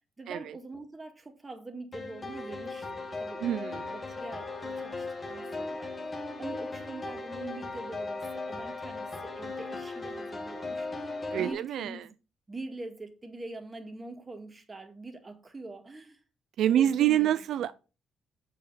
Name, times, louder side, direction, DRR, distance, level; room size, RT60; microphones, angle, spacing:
voice 1, 0.2-5.9 6.4-12.1 12.5-16.2 16.7-17.4, right 2 dB, 25° right, 1.9 m, -44 dB
sound 1, 1.9-11.5, left 3 dB, 25° left, 2.1 m, -37 dB
voice 2, 3.4-3.8 11.3-12.0 16.6-17.7, right 11 dB, 75° right, 0.3 m, -26 dB
6.6 x 5.1 x 5.6 m
cardioid pair, 90°, 0 cm